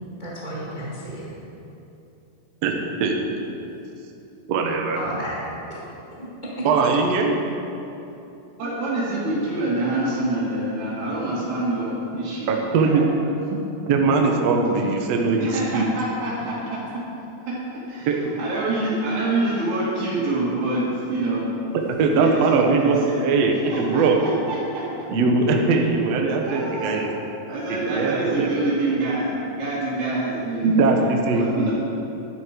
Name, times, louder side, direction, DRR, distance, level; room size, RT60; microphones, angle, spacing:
voice 1, 0.2-1.3 4.9-5.4 5.7-5.8 6.1-6.6, equal, 50° right, -6 dB, 0.5 m, -32 dB
voice 2, 4.5-5.0 6.6-7.4 12.5-13.1 13.5-13.6 13.9-15.9 18.1-18.2 18.5-18.6 22.0-24.2 25.1-27.1 27.7-28.5 30.6-31.7, right 4 dB, 65° right, 2 dB, 1.7 m, -21 dB
voice 3, 8.6-13.0 15.4-16.8 17.5-17.6 17.9-18.1 18.4-21.5 22.1-23.1 23.7-24.8 26.4-27.1 27.5-31.1 31.3-31.7, right 2 dB, 90° right, -11 dB, 4.3 m, -26 dB
12.0 x 10.5 x 5.2 m, 2.9 s
omnidirectional pair, 4.4 m